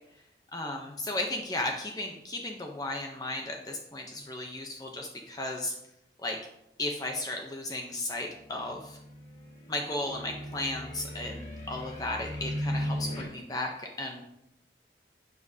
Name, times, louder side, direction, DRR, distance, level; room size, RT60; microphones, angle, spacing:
voice 1, 0.5-5.8 6.2-6.4 6.8-9.0 9.7-14.2, left 2 dB, 20° left, 2 dB, 0.7 m, -35 dB
sound 1, 8.3-13.2, equal, 40° left, 1.8 m, -37 dB
11.0 x 7.4 x 2.7 m, 0.83 s
head